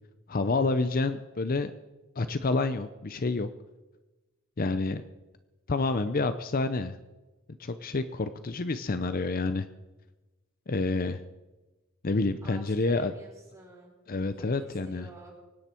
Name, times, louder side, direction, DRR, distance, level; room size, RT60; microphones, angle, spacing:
voice 1, 0.3-1.7 2.2-3.5 4.6-5.0 5.7-7.0 7.6-9.7 10.7-11.2 12.0-13.1 14.1-15.1, left 3 dB, 40° left, 11 dB, 0.6 m, -28 dB
voice 2, 12.4-13.9 14.3-15.4, right 1 dB, 15° right, -3 dB, 5.4 m, -50 dB
24.0 x 10.5 x 4.5 m, 1.1 s
head